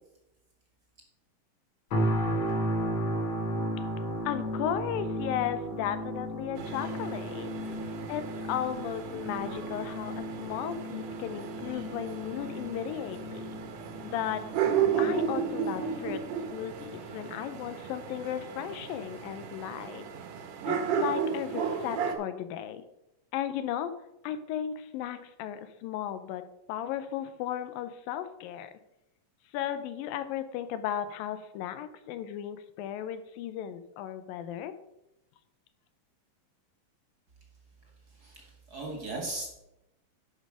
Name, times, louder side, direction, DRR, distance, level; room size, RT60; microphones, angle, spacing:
sound 1, 1.9-16.9 17.4-17.6, equal, 55° left, 1.5 m, -35 dB
voice 1, 4.3-7.7 8.1-8.2 8.5-13.6 14.0-14.4 15.0-16.2 16.5-20.1 20.7-22.8 23.3-23.9 24.2-26.4 26.7-28.7 29.5-34.7, left 10 dB, 90° left, 11 dB, 2.5 m, -35 dB
sound 2, 6.6-22.1, right 7 dB, 65° right, 2.0 m, -34 dB
voice 2, 38.1-39.6, right 2 dB, 40° right, 1 dB, 1.5 m, -38 dB
11.5 x 5.4 x 4.9 m, 0.91 s
omnidirectional pair, 3.9 m